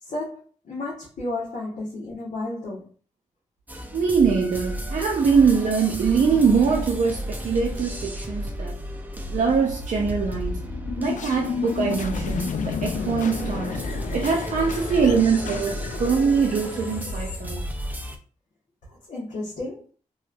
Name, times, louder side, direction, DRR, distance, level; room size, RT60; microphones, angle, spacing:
voice 1, 0.0-2.9 18.9-19.9, left 2 dB, 85° left, 1.1 m, -33 dB
sound 1, 3.7-18.2, equal, 15° right, 0.5 m, -33 dB
voice 2, 3.9-8.8 9.2-10.6 11.0-13.8 14.1-17.6, right 5 dB, 75° right, 0.6 m, -23 dB
sound 2, 9.0-18.2, left 5 dB, 70° left, 0.4 m, -32 dB
3.0 x 2.9 x 2.4 m
cardioid pair, 75°, 13 cm